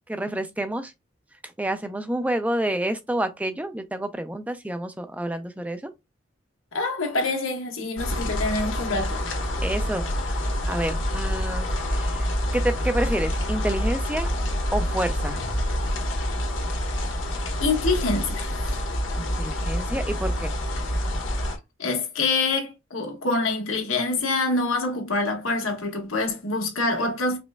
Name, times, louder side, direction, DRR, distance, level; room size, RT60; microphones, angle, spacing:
voice 1, 0.1-0.9 1.4-5.9 9.6-12.3 12.5-14.3 14.7-15.4 19.2-20.5, right 1 dB, 5° right, 0.3 m, -29 dB
voice 2, 6.7-9.2 17.6-18.7 21.8-27.4, left 3 dB, 90° left, 1.5 m, -26 dB
sound 1, 8.0-21.6, equal, 70° left, 1.3 m, -27 dB
5.0 x 3.2 x 2.2 m
head